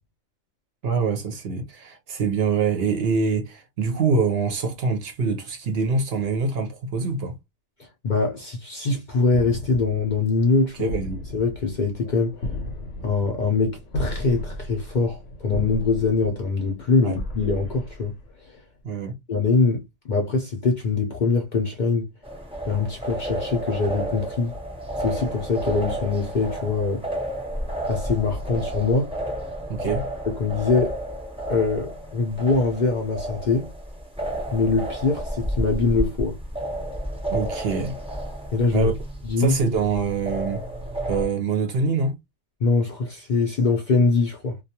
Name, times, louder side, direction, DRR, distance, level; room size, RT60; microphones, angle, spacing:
voice 1, 0.8-7.3 10.8-11.2 17.0-17.2 18.8-19.1 29.7-30.1 37.2-38.0 38.7-38.9 39.4-40.6 41.1-42.2, right 4 dB, 60° right, 0.8 m, -24 dB
voice 2, 7.8-10.9 11.3-12.4 13.0-18.1 19.3-22.1 22.7-24.6 25.0-27.0 27.9-29.1 30.3-31.0 31.5-33.7 34.5-36.4 38.5-38.9 39.2-39.6 42.6-44.6, left 4 dB, 55° left, 0.5 m, -23 dB
sound 1, 9.3-18.6, left 1 dB, 80° left, 1.0 m, -35 dB
sound 2, 22.2-41.3, right 1 dB, 5° right, 0.5 m, -31 dB
2.3 x 2.2 x 2.7 m
omnidirectional pair, 1.3 m